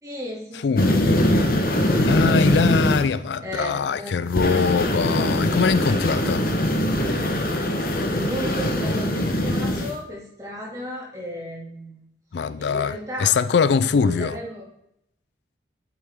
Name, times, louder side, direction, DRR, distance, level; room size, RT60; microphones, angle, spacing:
voice 1, 0.0-1.0 1.5-2.5 3.4-4.2 8.2-12.1 12.4-13.3 13.9-14.7, equal, 20° right, 2.4 m, -34 dB
voice 2, 0.5-1.3 2.1-6.5 12.3-14.4, left 5 dB, 80° left, 0.4 m, -22 dB
sound 1, 0.8-3.0 4.3-9.9, left 1 dB, 50° left, 1.1 m, -22 dB
8.5 x 7.6 x 3.6 m
head